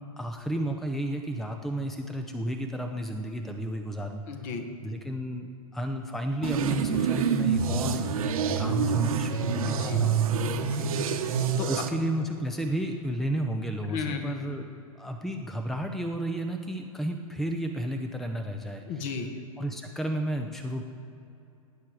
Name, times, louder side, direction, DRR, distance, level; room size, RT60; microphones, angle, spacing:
voice 1, 0.0-4.4 4.8-8.0 8.6-10.2 11.7-14.7 14.9-19.1 19.6-20.8, right 1 dB, ahead, 5 dB, 0.7 m, -32 dB
voice 2, 4.3-4.7 9.7-10.1 10.6-10.9 11.3-11.7 13.9-14.4 18.9-19.3, left 5 dB, 40° left, 7 dB, 1.5 m, -35 dB
sound 1, 6.4-11.9, right 6 dB, 75° right, 1.3 m, -27 dB
18.0 x 9.5 x 4.9 m, 2.7 s
hypercardioid pair, 120°, 19 cm